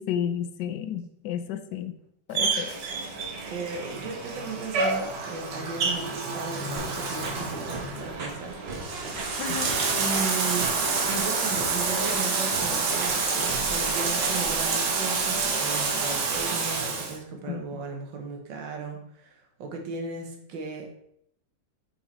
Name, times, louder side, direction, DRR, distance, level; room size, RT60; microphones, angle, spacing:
voice 1, 0.0-1.9 2.3-2.7 9.4-9.7 17.5-17.8, left 9 dB, 75° left, 8 dB, 1.2 m, -32 dB
Bathtub (filling or washing), 2.3-17.2, right 4 dB, 70° right, 1.6 m, -28 dB
voice 2, 3.5-9.4 10.0-10.7 11.1-20.9, right 4 dB, 85° right, 3 dB, 1.8 m, -36 dB
sound 1, 6.8-7.4 7.7-8.3 8.7-9.3 9.6-10.2 10.6-11.3 11.6-12.1 12.5-13.2 13.5-14.4, right 3 dB, 45° right, 1.0 m, -36 dB
5.2 x 4.8 x 4.1 m, 0.73 s
omnidirectional pair, 2.0 m